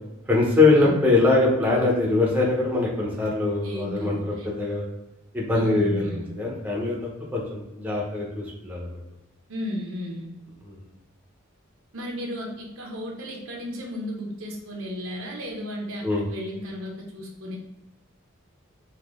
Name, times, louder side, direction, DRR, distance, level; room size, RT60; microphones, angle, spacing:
voice 1, 0.3-4.8 5.3-9.0 10.7-10.8 16.0-16.2, left 2 dB, 10° right, -3 dB, 0.9 m, -22 dB
voice 2, 3.6-4.5 5.5-6.3 9.5-10.3 11.9-17.6, left 1 dB, 75° right, -1 dB, 1.0 m, -34 dB
3.8 x 2.9 x 3.6 m, 0.99 s
head